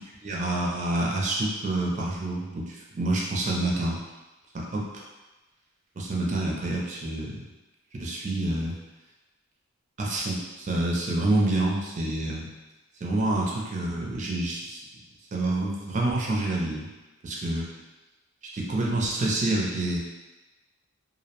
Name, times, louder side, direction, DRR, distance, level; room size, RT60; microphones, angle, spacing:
voice 1, 0.2-4.0 4.5-4.8 6.0-7.3 8.0-8.8 10.0-10.4 10.7-12.5 13.0-14.8 15.3-16.9 17.2-17.7 18.5-20.0, right 2 dB, 35° right, -2 dB, 0.4 m, -27 dB
2.4 x 2.0 x 2.8 m, 1.1 s
head